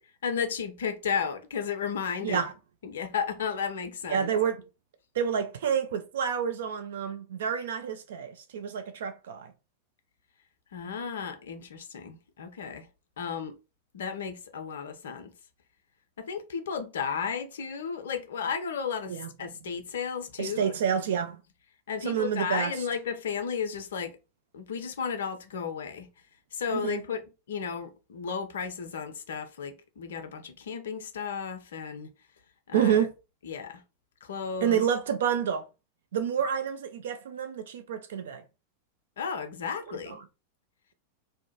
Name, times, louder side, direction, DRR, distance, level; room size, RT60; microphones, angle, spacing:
voice 1, 0.2-2.5 2.8-4.3 10.7-12.9 13.2-13.6 13.9-15.3 16.2-20.7 21.9-24.2 24.5-26.1 26.5-32.1 32.7-33.1 33.4-33.8 34.2-34.8 39.2-40.2, left 6 dB, 60° left, 0.4 m, -34 dB
voice 2, 2.2-2.5 4.1-4.6 5.2-9.5 19.1-19.3 20.4-21.4 22.0-22.7 26.7-27.0 32.7-33.1 34.6-35.7 36.1-38.4, right 8 dB, 60° right, 0.3 m, -28 dB
2.5 x 2.1 x 2.8 m
figure-of-eight pair, 90°, 0 cm